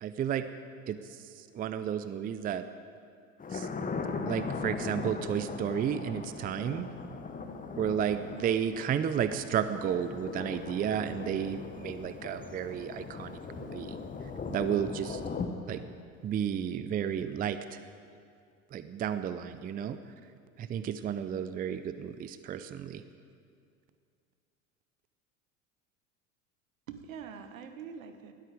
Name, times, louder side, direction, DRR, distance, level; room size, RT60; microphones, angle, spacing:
voice 1, 0.0-0.5 0.9-1.0 1.5-2.6 3.5-3.7 4.3-6.9 7.8-14.0 14.5-15.2 15.7-15.8 16.2-17.8 18.7-20.0 20.6-23.0, right 9 dB, 20° right, 12 dB, 0.6 m, -32 dB
Thunder, 3.4-15.5, left 4 dB, 20° left, 1.4 m, -39 dB
voice 2, 26.9-28.3, right 7 dB, 70° right, 8 dB, 1.4 m, -45 dB
19.5 x 13.0 x 5.1 m, 2.3 s
figure-of-eight pair, 75°, 42 cm